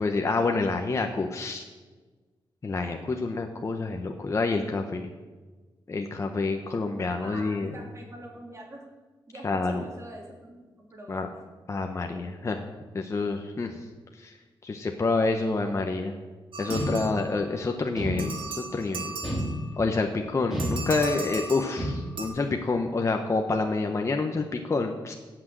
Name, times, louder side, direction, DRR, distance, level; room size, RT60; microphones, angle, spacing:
voice 1, 0.0-1.6 2.6-5.1 5.9-7.7 9.4-9.8 11.1-11.3 11.7-12.7 12.9-13.8 14.2-14.3 14.6-16.2 16.6-18.3 18.7-19.2 19.8-25.1, left 3 dB, 35° left, 3 dB, 1.1 m, -28 dB
voice 2, 7.2-8.9 9.3-11.3, right 1 dB, 35° right, -1 dB, 3.3 m, -44 dB
sound 1, 16.5-17.7 18.2-19.9 20.6-22.3, right 3 dB, 75° right, 2.1 m, -38 dB
sound 2, 16.7-17.5 17.9-18.7 19.2-20.0 20.5-21.3 21.8-22.4, equal, 5° right, 3.7 m, -31 dB
17.0 x 6.2 x 7.7 m, 1.3 s
wide cardioid pair, 115°, 9 cm